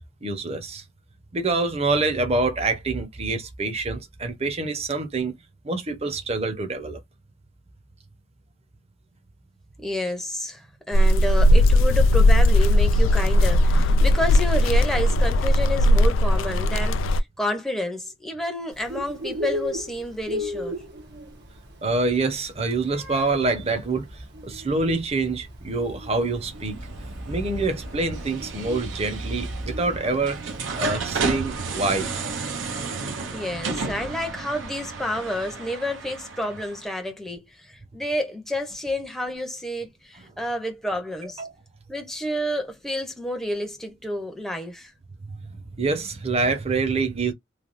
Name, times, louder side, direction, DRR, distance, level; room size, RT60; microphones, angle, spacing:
voice 1, 0.2-0.8 1.3-5.3 5.6-7.0 21.8-26.8 27.3-30.4 30.7-32.1 41.4-41.5 45.3-47.3, right 3 dB, 35° right, 0.8 m, -26 dB
voice 2, 9.8-20.8 33.3-41.4 41.9-44.9, left 1 dB, ahead, 0.7 m, -30 dB
sound 1, 10.9-17.2, left 1 dB, 80° left, 0.3 m, -18 dB
Bird, 18.7-30.9, left 1 dB, 60° right, 1.1 m, -37 dB
sound 2, 26.2-36.9, right 4 dB, 75° right, 0.8 m, -33 dB
3.3 x 2.2 x 2.5 m
head